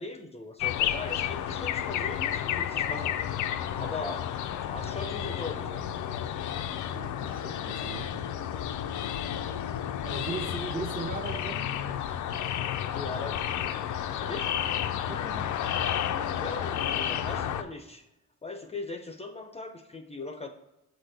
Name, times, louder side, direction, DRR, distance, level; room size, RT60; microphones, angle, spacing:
voice 1, 0.0-3.2 3.8-4.2 4.6-5.9 12.9-13.5 14.2-14.5 16.4-18.0 18.4-20.5, left 3 dB, 20° left, 6 dB, 0.6 m, -39 dB
sound 1, 0.6-17.6, left 10 dB, 75° left, 0.5 m, -31 dB
voice 2, 6.9-8.2 10.0-11.7 15.1-15.6, right 4 dB, 30° right, 5 dB, 0.8 m, -38 dB
7.4 x 4.2 x 3.3 m, 0.94 s
cardioid pair, 90°, 30 cm